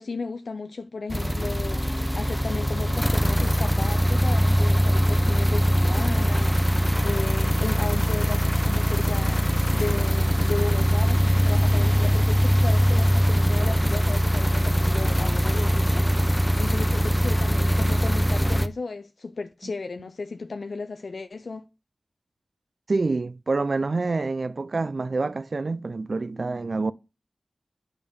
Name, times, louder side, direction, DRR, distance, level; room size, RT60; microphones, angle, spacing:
voice 1, 0.0-21.6, left 3 dB, 75° left, 0.4 m, -35 dB
sound 1, 1.1-18.7, equal, 5° left, 0.5 m, -22 dB
voice 2, 22.9-26.9, right 3 dB, 65° right, 0.3 m, -27 dB
8.8 x 3.5 x 5.1 m
cardioid pair, 45°, 0 cm